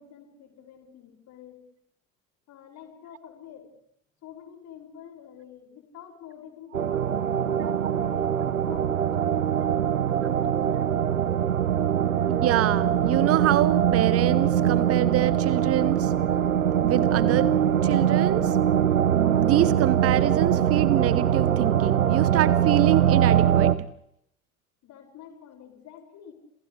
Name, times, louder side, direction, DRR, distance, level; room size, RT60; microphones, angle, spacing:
voice 1, 0.0-1.6 2.5-3.7 4.2-8.2 8.5-10.8 24.8-26.3, left 9 dB, 40° left, 2 dB, 6.6 m, -48 dB
sound 1, 6.7-23.7, right 9 dB, 80° right, 1.0 m, -22 dB
voice 2, 12.3-16.1 16.8-17.5 17.8-18.6 19.1-23.7, right 14 dB, 35° right, 18 dB, 1.0 m, -26 dB
29.0 x 27.5 x 3.4 m, 0.73 s
figure-of-eight pair, 70°, 41 cm